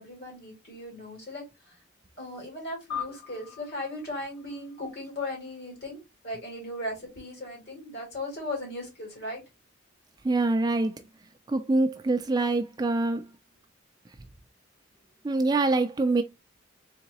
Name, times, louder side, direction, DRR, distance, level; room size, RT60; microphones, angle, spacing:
voice 1, 0.0-1.8 2.2-9.4, left 1 dB, 55° left, 2.6 m, -37 dB
sound 1, 2.9-5.6, left 7 dB, 25° left, 1.2 m, -41 dB
voice 2, 10.2-11.0 11.5-13.3 15.2-16.2, right 2 dB, 20° right, 0.3 m, -25 dB
3.9 x 3.6 x 2.9 m
head